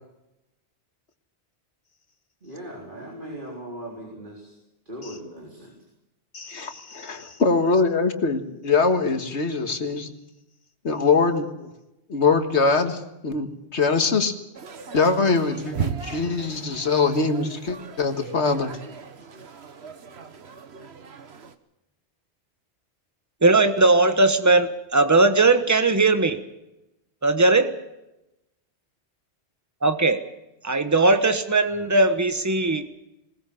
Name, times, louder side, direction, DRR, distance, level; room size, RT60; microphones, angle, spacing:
voice 1, 2.4-4.5 4.9-5.7, right 1 dB, 50° right, -1 dB, 4.2 m, -38 dB
voice 2, 6.3-10.1 10.8-11.7 12.1-14.3 14.9-18.8, left 4 dB, 80° left, 7 dB, 2.0 m, -23 dB
sound 1, 14.5-21.6, right 7 dB, 70° right, 1.4 m, -37 dB
voice 3, 23.4-26.4 27.2-27.7 29.8-30.2 30.6-32.9, right 3 dB, 15° right, 9 dB, 1.2 m, -19 dB
20.5 x 19.0 x 7.1 m, 0.92 s
omnidirectional pair, 1.1 m